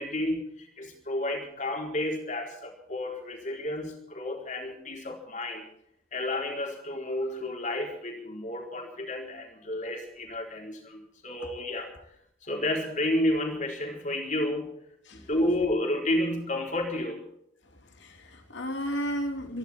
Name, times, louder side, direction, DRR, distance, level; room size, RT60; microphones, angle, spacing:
voice 1, 0.0-5.6 6.1-11.9 12.4-14.7 15.1-17.2, left 1 dB, 35° left, 2 dB, 4.2 m, -31 dB
voice 2, 17.6-19.6, equal, 55° left, 5 dB, 2.9 m, -34 dB
26.5 x 11.5 x 4.5 m, 0.72 s
head